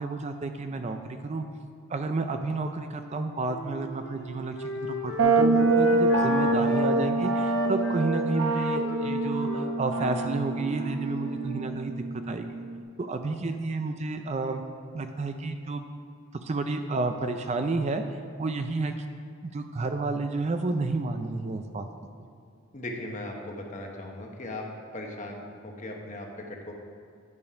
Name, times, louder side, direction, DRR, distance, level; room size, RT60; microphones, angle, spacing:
voice 1, 0.0-1.5 1.9-12.6 13.0-14.6 14.9-15.8 16.4-19.1 19.4-21.9 22.2-22.3, right 3 dB, 30° right, 7 dB, 0.4 m, -31 dB
Wind instrument woodwind instrument, 2.9-6.9 7.3-11.7, left 1 dB, 55° left, 1.2 m, -35 dB
sound 1, 5.2-12.8, right 2 dB, 70° right, 0.7 m, -26 dB
voice 2, 22.7-24.7 24.9-26.7, left 1 dB, 35° left, 1 dB, 1.0 m, -38 dB
9.5 x 5.2 x 5.7 m, 2.3 s
head